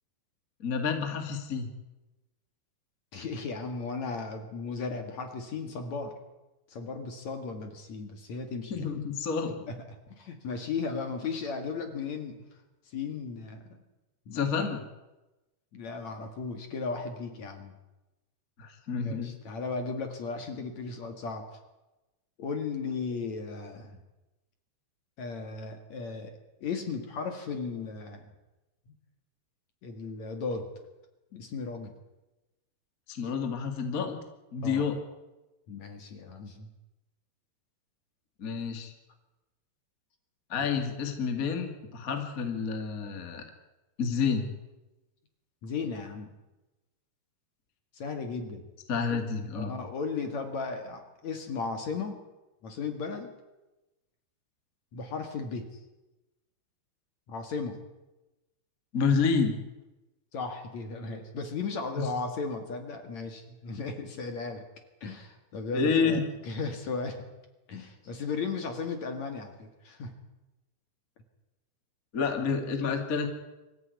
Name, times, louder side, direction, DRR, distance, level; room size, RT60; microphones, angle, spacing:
voice 1, 0.6-1.7 8.7-9.6 14.3-14.8 18.6-19.3 33.1-34.2 34.5-35.0 38.4-38.9 40.5-43.4 44.0-44.5 48.9-49.7 58.9-59.5 65.7-66.2 72.1-73.3, left 5 dB, 30° left, 5 dB, 1.6 m, -29 dB
voice 2, 3.1-6.1 6.7-8.9 9.4-9.8 10.2-12.4 12.8-13.8 14.3-14.7 15.7-17.8 18.9-21.6 22.4-24.0 25.2-26.3 26.6-28.3 28.9-29.0 29.8-30.7 31.3-31.9 34.6-34.9 35.7-36.7 40.5-40.7 45.6-46.3 47.9-48.7 49.1-49.2 49.5-52.2 52.6-53.3 54.9-55.8 57.3-57.8 60.3-64.6 65.0-67.2 67.7-70.1, left 4 dB, 50° left, 6 dB, 2.7 m, -36 dB
24.5 x 14.0 x 9.5 m, 1.0 s
omnidirectional pair, 5.0 m